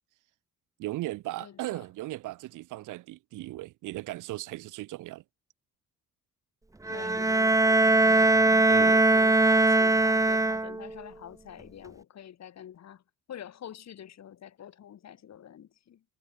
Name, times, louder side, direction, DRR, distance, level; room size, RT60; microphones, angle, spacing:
voice 1, 0.8-5.2 8.7-9.1, right 17 dB, 90° right, 1.4 m, -37 dB
voice 2, 1.4-1.8 6.9-8.5 9.1-13.0 13.3-16.0, left 10 dB, 60° left, 3.6 m, -46 dB
Bowed string instrument, 6.9-11.0, right 2 dB, 10° right, 0.9 m, -21 dB
cardioid pair, 90°, 30 cm